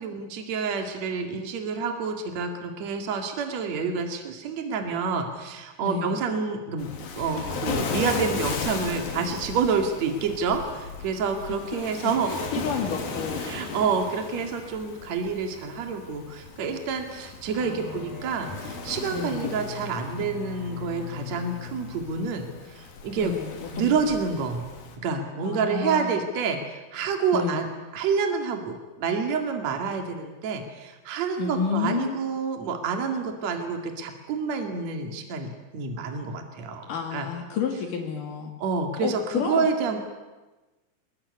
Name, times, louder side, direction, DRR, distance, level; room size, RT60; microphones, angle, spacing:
voice 1, 0.0-6.9 7.1-12.6 13.4-23.3 23.7-24.7 25.0-27.7 27.9-37.3 38.6-40.0, right 5 dB, 50° right, 4 dB, 3.4 m, -28 dB
voice 2, 5.8-6.2 11.8-13.4 17.6-18.2 19.1-19.5 23.2-23.9 25.4-26.2 27.3-27.6 31.4-32.3 36.9-38.5 39.0-39.7, left 6 dB, 65° left, 3 dB, 3.9 m, -31 dB
Waves surf, 6.8-25.0, left 5 dB, 85° left, 4.8 m, -36 dB
Bowed string instrument, 17.6-23.0, left 6 dB, 25° left, 7.1 m, -41 dB
25.5 x 21.0 x 9.8 m, 1.2 s
omnidirectional pair, 4.1 m